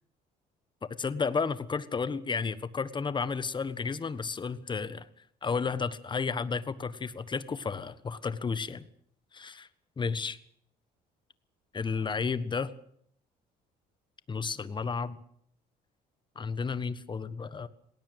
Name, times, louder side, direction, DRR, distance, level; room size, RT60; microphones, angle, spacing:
voice 1, 0.8-5.1 5.4-8.8 9.3-9.7 10.0-10.4 11.7-12.7 14.3-15.2 16.3-17.7, left 5 dB, 25° left, 16 dB, 1.5 m, -32 dB
20.0 x 18.0 x 8.0 m, 0.66 s
cardioid pair, 110°, 17 cm